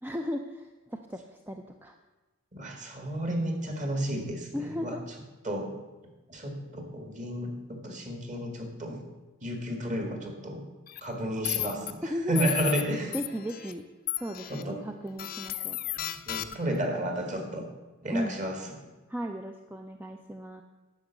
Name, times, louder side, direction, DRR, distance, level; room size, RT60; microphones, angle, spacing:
voice 1, 0.0-1.9 4.5-5.0 12.1-12.5 13.1-13.8 14.2-15.8 18.1-18.4 19.1-20.6, equal, 10° right, 4 dB, 0.4 m, -35 dB
voice 2, 2.5-5.0 5.4-5.7 6.3-9.0 9.4-10.6 11.0-13.1 14.5-14.8 16.3-17.7 18.0-18.6, right 1 dB, 35° right, 4 dB, 1.7 m, -32 dB
sound 1, 10.9-11.0 11.4-11.9 12.3-12.8 13.1-13.7 14.1-14.6 15.2-16.8, left 14 dB, 45° left, 0.5 m, -33 dB
10.5 x 6.1 x 8.0 m, 1.2 s
head